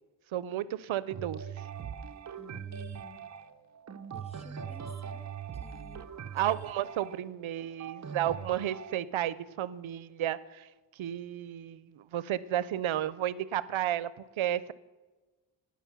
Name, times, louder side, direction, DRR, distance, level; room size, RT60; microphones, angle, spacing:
voice 1, 0.3-1.6 6.3-10.7 11.0-14.1 14.4-14.7, right 11 dB, 85° right, 18 dB, 0.5 m, -32 dB
sound 1, 1.1-9.0, right 7 dB, 40° right, 0.6 m, -41 dB
voice 2, 2.4-3.3 4.1-5.2 5.6-6.1, left 5 dB, 15° left, 8 dB, 0.9 m, -53 dB
17.5 x 6.2 x 5.9 m, 1.2 s
wide cardioid pair, 110°, 47 cm